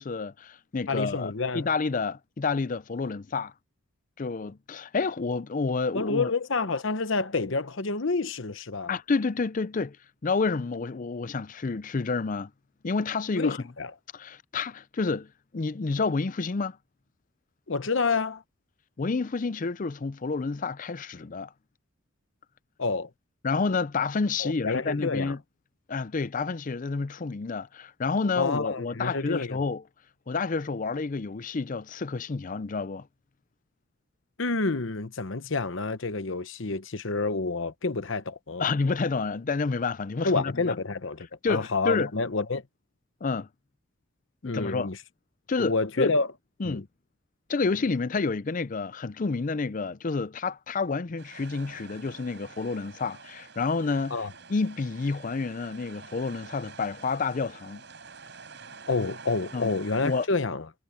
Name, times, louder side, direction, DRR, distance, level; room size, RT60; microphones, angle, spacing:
voice 1, 0.0-3.5 4.2-6.3 8.9-10.0 10.2-12.5 12.8-13.6 14.1-16.8 19.0-21.5 23.4-25.4 25.9-29.8 30.3-33.1 38.6-40.8 41.4-42.1 43.2-43.5 44.4-44.9 45.5-46.1 46.6-46.9 47.5-54.2 54.5-57.8 59.5-59.7 60.0-60.3, left 4 dB, 40° left, 0.5 m, -29 dB
voice 2, 0.9-1.7 5.9-9.0 13.4-13.9 17.7-18.4 22.8-23.1 24.4-25.3 28.4-29.6 34.4-38.6 40.2-42.6 44.4-45.0 45.6-46.3 46.6-46.8 54.1-54.3 58.9-60.6, left 3 dB, 60° left, 1.0 m, -28 dB
sound 1, 51.2-60.3, right 5 dB, 55° right, 6.3 m, -48 dB
head